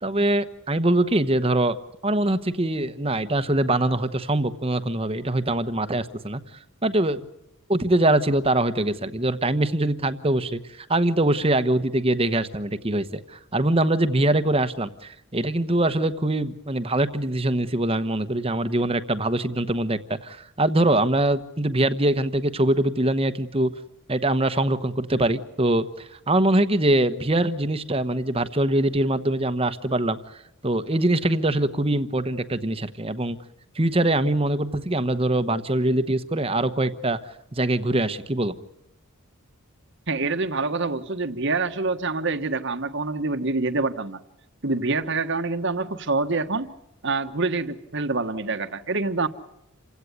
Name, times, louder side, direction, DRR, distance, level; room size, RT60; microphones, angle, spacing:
voice 1, 0.0-1.8 2.0-6.4 6.8-7.3 7.7-23.7 24.1-33.4 33.7-37.2 37.5-38.6, right 1 dB, 25° right, 11 dB, 1.0 m, -23 dB
voice 2, 40.1-44.2 44.6-46.7 47.0-49.3, right 3 dB, 55° right, 9 dB, 1.4 m, -26 dB
28.5 x 16.5 x 9.6 m, 0.83 s
head